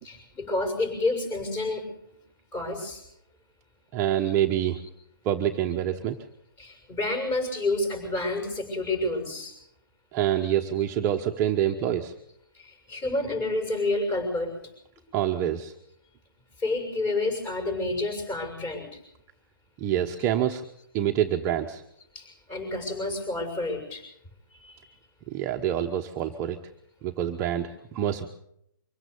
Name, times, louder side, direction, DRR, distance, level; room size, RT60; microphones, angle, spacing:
voice 1, 0.0-1.9 2.5-3.0 4.2-4.3 6.6-9.5 10.4-10.5 12.5-14.5 16.6-19.0 20.2-20.3 22.1-24.0 24.5-25.0, left 2 dB, 20° left, 5 dB, 6.7 m, -29 dB
voice 2, 3.9-4.8 5.2-6.2 10.1-12.1 15.1-15.7 19.8-20.6 20.9-21.8 25.3-26.6 27.0-28.3, right 11 dB, 20° right, 4 dB, 1.1 m, -26 dB
24.5 x 17.0 x 7.0 m, 0.76 s
hypercardioid pair, 145°, 11 cm